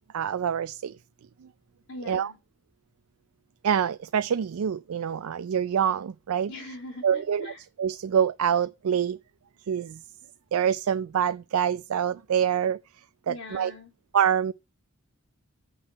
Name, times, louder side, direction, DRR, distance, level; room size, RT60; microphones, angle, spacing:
voice 1, 0.1-0.9 1.4-1.5 2.1-2.3 3.6-6.5 7.0-7.5 7.8-9.2 9.7-10.0 10.5-12.8 13.3-13.7 14.1-14.5, right 8 dB, 90° right, 0.4 m, -26 dB
voice 2, 1.9-2.4 6.5-7.6 13.3-13.9, left 2 dB, 65° left, 3.1 m, -41 dB
6.2 x 5.9 x 6.7 m
head